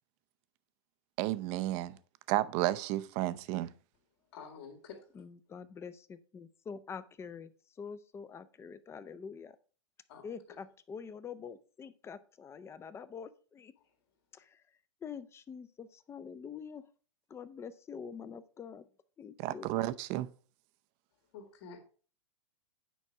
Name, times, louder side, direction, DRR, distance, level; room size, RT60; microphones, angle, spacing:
voice 1, 1.2-2.0 2.3-3.7 19.4-20.3, right 15 dB, 40° right, 0.6 m, -32 dB
voice 2, 4.3-5.1 10.1-10.6 21.3-21.8, left 5 dB, 55° left, 2.4 m, -49 dB
voice 3, 5.1-7.5 7.8-9.6 10.2-13.7 14.3-14.6 15.0-16.9 17.3-18.8 19.2-19.7, left 6 dB, 15° left, 0.6 m, -46 dB
9.3 x 5.3 x 4.7 m
hypercardioid pair, 120°, 16 cm